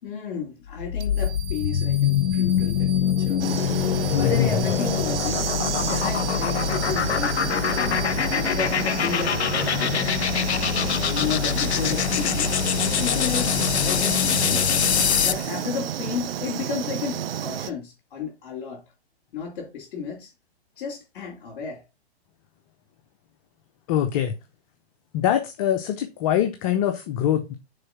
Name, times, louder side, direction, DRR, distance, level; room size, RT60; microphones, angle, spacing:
voice 1, 0.0-3.6 4.2-10.2 11.0-12.5 12.8-14.7 15.2-18.8 19.3-20.3 20.8-21.8, left 6 dB, 50° left, 3.2 m, -33 dB
sound 1, 0.7-15.5, left 9 dB, 80° left, 0.7 m, -24 dB
sound 2, 1.0-9.5, right 6 dB, 20° right, 0.7 m, -39 dB
sound 3, 3.4-17.7, right 9 dB, 65° right, 0.7 m, -31 dB
voice 2, 4.1-4.7 23.9-24.3 25.1-27.6, left 10 dB, 35° left, 0.8 m, -23 dB
6.6 x 4.4 x 5.8 m
hypercardioid pair, 130°, 32 cm